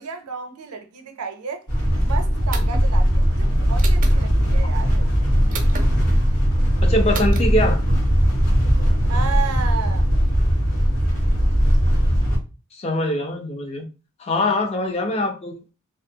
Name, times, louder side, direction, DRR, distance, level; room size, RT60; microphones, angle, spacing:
voice 1, 0.0-1.6 2.0-5.1 9.1-10.1, right 6 dB, 85° right, 0.5 m, -32 dB
sound 1, 1.7-12.4, equal, 80° left, 1.1 m, -19 dB
sound 2, 2.5-2.9 3.8-4.2 5.5-5.9 7.1-7.4, right 5 dB, 35° right, 0.3 m, -32 dB
voice 2, 6.8-7.8 12.8-13.9 14.2-15.6, left 1 dB, 30° left, 0.4 m, -23 dB
2.6 x 2.3 x 2.7 m
head